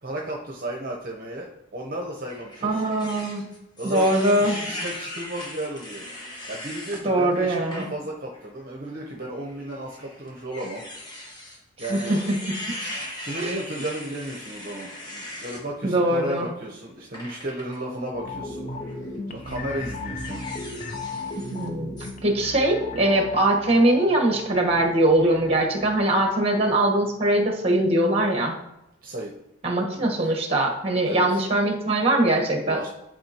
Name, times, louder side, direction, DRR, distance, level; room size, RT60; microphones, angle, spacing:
voice 1, 0.0-2.9 3.8-6.1 6.5-10.8 11.2-11.3 11.8-12.2 12.8-18.7 19.3-20.4 29.0-29.3 29.9-30.1 31.0-31.4 32.6-32.9, right 1 dB, 50° right, -1 dB, 0.9 m, -34 dB
sound 1, 2.3-7.0 7.5-7.9 8.3-8.5 9.5-15.6 17.1-17.8 18.7-19.0 19.4-21.7 22.0-22.1, left 1 dB, 25° left, 1.2 m, -38 dB
voice 2, 2.6-3.4 3.8-4.6 7.0-7.8 11.8-12.3 13.4-13.5 15.8-16.5 21.4-21.9 22.2-28.5 29.6-32.8, right 1 dB, 35° right, 0 dB, 1.3 m, -22 dB
sound 2, 18.1-27.4 27.8-27.9, left 2 dB, 40° left, 0.6 m, -37 dB
11.0 x 5.1 x 3.0 m, 0.87 s
head